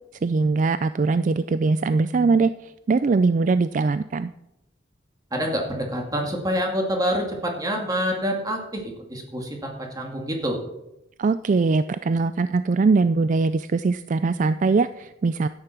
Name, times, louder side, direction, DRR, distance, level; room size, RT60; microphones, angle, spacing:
voice 1, 0.2-4.3 11.2-15.5, right 4 dB, 40° right, 13 dB, 0.3 m, -21 dB
voice 2, 5.3-8.8 9.1-10.6, equal, 20° right, 1 dB, 2.4 m, -26 dB
12.5 x 9.9 x 6.0 m, 0.88 s
head